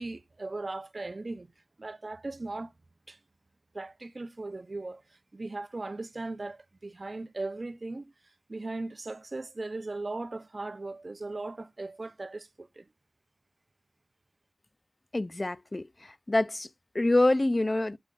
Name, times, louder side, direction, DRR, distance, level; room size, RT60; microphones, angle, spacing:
voice 1, 0.0-1.5 1.8-2.7 3.1-3.2 3.7-5.0 5.3-8.1 8.5-12.9, right 2 dB, 65° right, 0.5 m, -38 dB
voice 2, 15.1-16.7 16.9-18.0, left 2 dB, 45° left, 0.4 m, -26 dB
7.7 x 4.9 x 3.7 m
wide cardioid pair, 45°, 0 cm